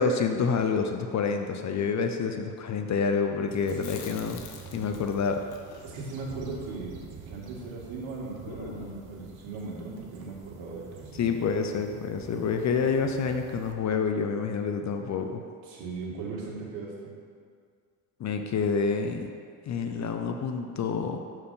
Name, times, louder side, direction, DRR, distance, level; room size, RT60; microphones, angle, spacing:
voice 1, 0.0-4.4 4.7-5.4 11.2-15.4 18.2-19.3 19.6-21.2, left 5 dB, 35° left, 5 dB, 0.5 m, -28 dB
sound 1, 3.5-13.7, right 5 dB, 50° right, 1.1 m, -47 dB
Chewing mastication, 3.6-7.8 8.0-8.1 8.5-9.2, left 5 dB, 75° left, 1.0 m, -46 dB
voice 2, 3.6-4.2 5.8-6.9 7.3-11.3 15.6-17.1, right 3 dB, 70° right, -3 dB, 1.9 m, -38 dB
6.4 x 4.5 x 5.5 m, 2.1 s
supercardioid pair, 90°, 49 cm